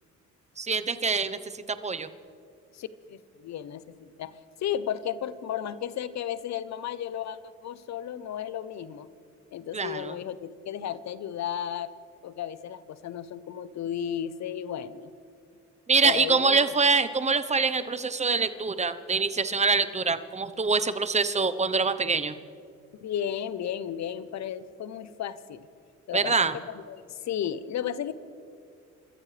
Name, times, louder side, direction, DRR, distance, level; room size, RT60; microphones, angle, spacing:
voice 1, 0.6-2.1 9.7-10.2 15.9-22.4 26.1-26.6, right 4 dB, 20° right, 11 dB, 0.9 m, -25 dB
voice 2, 2.7-4.3 4.6-9.1 9.5-11.9 12.2-15.1 16.0-16.7 23.0-25.7 26.1-26.4 26.7-28.1, left 9 dB, 65° left, 15 dB, 0.9 m, -34 dB
29.5 x 14.0 x 3.4 m, 2.5 s
cardioid pair, 90°, 30 cm